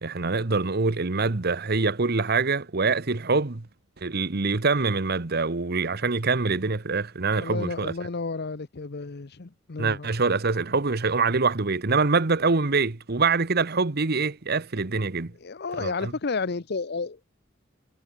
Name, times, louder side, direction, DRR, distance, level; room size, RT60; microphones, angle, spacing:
voice 1, 0.0-3.6 4.0-7.9 9.8-15.3 15.8-16.1, right 4 dB, 55° right, 1.1 m, -25 dB
voice 2, 7.3-10.1 15.4-17.2, left 4 dB, 55° left, 0.8 m, -32 dB
head